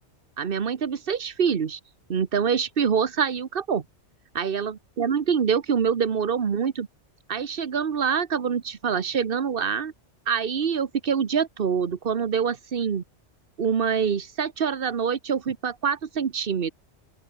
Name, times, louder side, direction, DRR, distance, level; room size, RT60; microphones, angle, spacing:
voice 1, 0.4-1.8 2.1-3.8 4.3-6.9 7.3-9.9 10.3-13.0 13.6-16.7, right 7 dB, 55° right, 1.2 m, -25 dB
open air
omnidirectional pair, 1.2 m